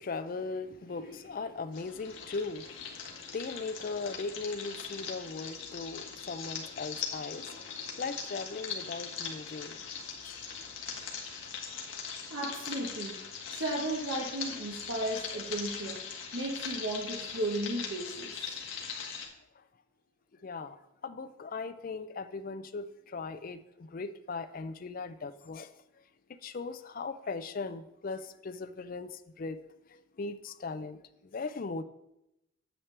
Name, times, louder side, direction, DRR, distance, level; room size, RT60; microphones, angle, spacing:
voice 1, 0.0-10.5 18.9-19.1 19.6-19.7 20.4-20.8 21.0-25.7 26.3-29.6 29.9-31.0 31.3-31.8, left 4 dB, 40° left, 0.4 m, -39 dB
sound 1, 1.7-19.3, left 6 dB, 65° left, 1.4 m, -41 dB
voice 2, 12.3-13.2 13.5-16.0 16.3-18.4, right 1 dB, 70° right, 1.1 m, -34 dB
8.8 x 8.1 x 3.3 m
head